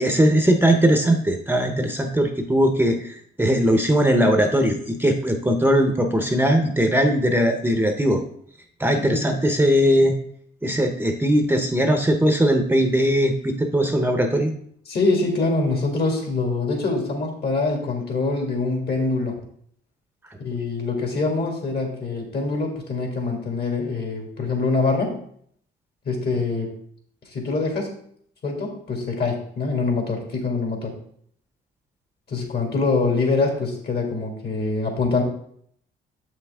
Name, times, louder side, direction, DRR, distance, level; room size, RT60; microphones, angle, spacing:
voice 1, 0.0-8.2 8.8-10.2 10.6-14.5, equal, 10° right, 5 dB, 0.8 m, -20 dB
voice 2, 9.0-9.4 14.9-19.4 20.4-25.1 26.1-26.7 27.3-27.9 28.4-30.9 32.3-35.2, left 3 dB, 55° left, 2 dB, 2.4 m, -24 dB
7.4 x 5.8 x 3.6 m, 0.64 s
cardioid pair, 90°, 20 cm